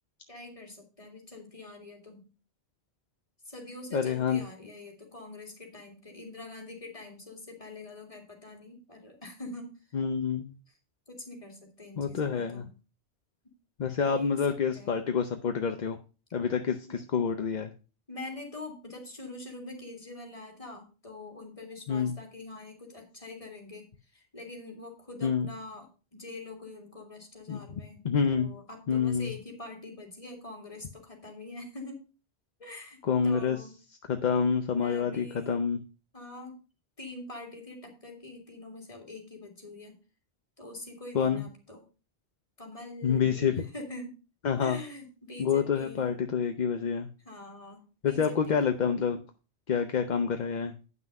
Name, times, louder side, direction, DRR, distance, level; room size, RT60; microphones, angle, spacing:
voice 1, 0.3-2.3 3.5-9.8 11.1-12.7 14.0-15.0 16.9-17.1 18.1-23.9 24.1-32.0 32.6-33.7 34.7-35.6 36.1-36.6 37.0-39.9 40.6-41.8 42.6-44.2 44.6-46.2 47.2-48.8, left 2 dB, 30° left, 2 dB, 2.5 m, -44 dB
voice 2, 3.9-4.4 9.9-10.5 12.0-12.7 13.8-16.0 16.3-17.7 21.9-22.1 25.2-25.5 27.5-27.6 28.0-28.5 28.9-29.3 33.0-33.6 34.1-35.8 41.1-41.4 43.0-43.5 44.4-44.8 45.4-47.1 48.0-49.2 49.7-50.7, left 6 dB, 45° left, 7 dB, 0.7 m, -27 dB
9.5 x 5.9 x 5.3 m, 0.33 s
omnidirectional pair, 1.2 m